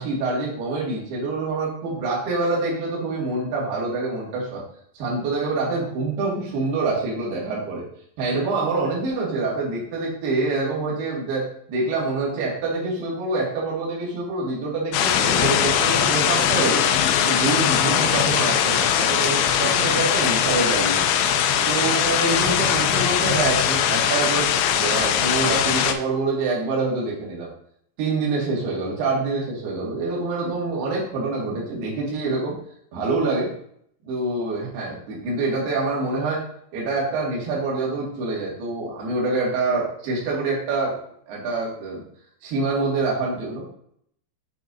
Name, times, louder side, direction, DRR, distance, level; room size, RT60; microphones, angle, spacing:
voice 1, 0.0-4.6 4.9-7.8 8.2-16.9 17.2-21.1 21.7-27.5 28.0-32.6 32.9-33.5 34.0-36.5 36.7-41.0 41.3-42.0 42.4-43.7, right 3 dB, 65° right, -4 dB, 3.7 m, -26 dB
sound 1, 14.9-25.9, left 9 dB, 85° left, 2.2 m, -21 dB
7.8 x 6.0 x 2.7 m, 0.66 s
omnidirectional pair, 5.1 m